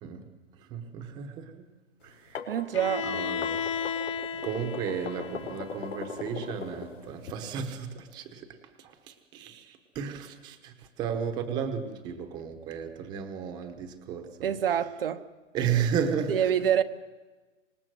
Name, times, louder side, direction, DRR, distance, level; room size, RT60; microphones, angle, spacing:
voice 1, 0.0-1.7 2.0-2.5 3.0-3.6 4.0-4.1 4.4-14.6 15.5-16.5, right 7 dB, 10° right, 1.0 m, -34 dB
sound 1, 2.1-7.3, left 6 dB, 75° left, 5.0 m, -39 dB
voice 2, 2.5-3.1 14.4-15.2 16.3-16.8, right 9 dB, 50° right, 0.9 m, -26 dB
Bowed string instrument, 2.7-6.6, left 7 dB, 25° left, 0.7 m, -35 dB
26.0 x 20.0 x 7.7 m
hypercardioid pair, 175°, 37 cm